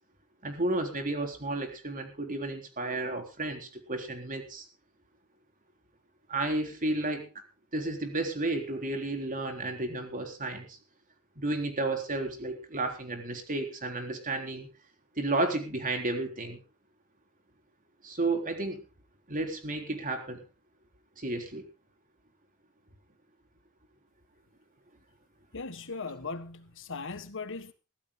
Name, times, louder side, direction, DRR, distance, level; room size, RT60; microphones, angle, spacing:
voice 1, 0.4-4.7 6.3-7.3 7.7-10.8 11.4-14.7 15.2-16.6 18.0-18.8 19.3-20.4 21.2-21.6, right 2 dB, 40° right, 3.8 m, -32 dB
voice 2, 25.5-27.7, left 4 dB, 60° left, 1.5 m, -38 dB
23.0 x 15.5 x 2.2 m
head